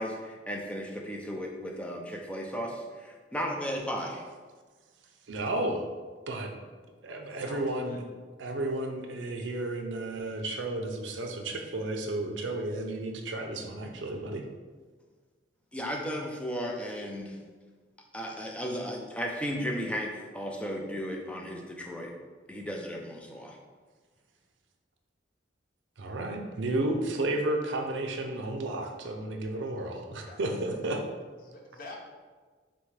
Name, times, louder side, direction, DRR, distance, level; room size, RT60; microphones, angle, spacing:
voice 1, 0.0-4.2 15.7-17.4 18.1-22.1 22.5-23.6, equal, 5° left, 0 dB, 0.4 m, -35 dB
voice 2, 5.3-5.9 6.3-6.5 7.0-8.0 8.4-14.4 26.0-31.1, right 2 dB, 80° right, 4 dB, 0.5 m, -32 dB
voice 3, 7.1-8.0 26.7-26.9 30.2-30.4 31.4-32.0, left 2 dB, 50° left, 0 dB, 0.7 m, -47 dB
5.9 x 2.2 x 3.3 m, 1.4 s
head